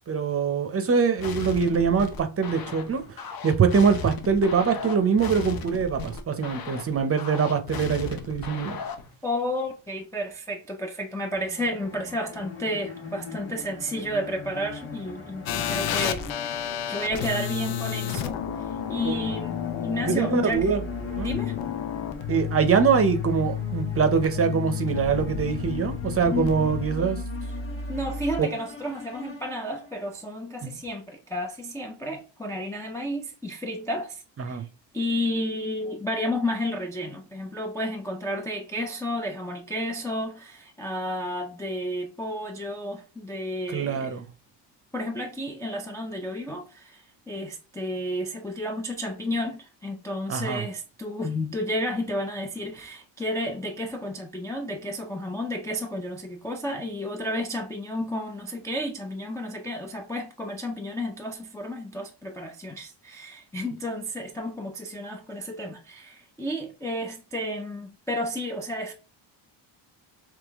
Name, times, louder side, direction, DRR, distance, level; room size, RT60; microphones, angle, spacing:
voice 1, 0.1-8.8 19.0-19.1 20.0-20.8 21.2-21.3 22.3-27.2 28.4-28.5 30.6-30.8 34.4-34.7 43.7-44.3 50.3-50.6, right 6 dB, 30° right, 0.6 m, -24 dB
sound 1, 1.2-9.1, left 5 dB, 50° left, 0.7 m, -36 dB
voice 2, 9.2-19.6 19.8-20.7 21.2-21.5 26.3-26.5 27.9-34.6 34.9-44.2 44.9-68.9, equal, 5° left, 0.3 m, -32 dB
sound 2, 11.3-30.1, left 7 dB, 30° left, 1.2 m, -39 dB
sound 3, 15.5-28.4, left 7 dB, 85° left, 0.7 m, -31 dB
3.6 x 3.2 x 3.4 m
cardioid pair, 135°, 46 cm